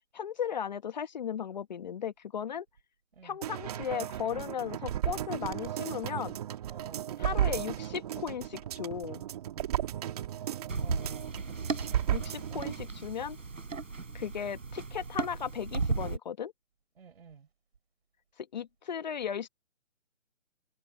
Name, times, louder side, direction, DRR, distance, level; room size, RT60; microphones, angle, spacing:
voice 1, 0.1-2.7 3.2-6.4 7.2-9.2 12.1-13.4 14.1-16.5 18.4-19.5, left 8 dB, 35° left, 1.4 m, -36 dB
sound 1, 3.4-12.8 13.2-13.3, right 11 dB, 30° right, 2.5 m, -34 dB
voice 2, 6.7-7.1 10.3-11.3 17.0-17.5, right 6 dB, 50° right, 6.7 m, -52 dB
sound 2, 10.7-16.2, right 4 dB, 75° right, 6.8 m, -35 dB
figure-of-eight pair, 155°, 39 cm